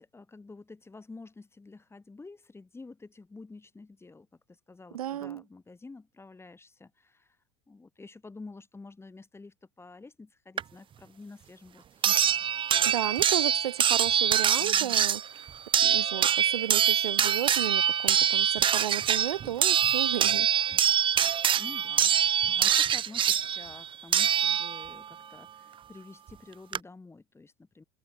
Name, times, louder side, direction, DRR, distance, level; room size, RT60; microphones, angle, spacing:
voice 1, 0.0-7.4 7.7-12.5 14.6-15.0 21.5-27.8, left 3 dB, 15° left, 4.4 m, -49 dB
voice 2, 4.9-5.4 12.8-15.5 15.8-20.5, right 12 dB, 85° right, 2.2 m, -33 dB
sound 1, 10.6-10.7 12.0-25.0 26.3-26.4 26.7-26.8, right 9 dB, 25° right, 0.6 m, -24 dB
hypercardioid pair, 95°, 18 cm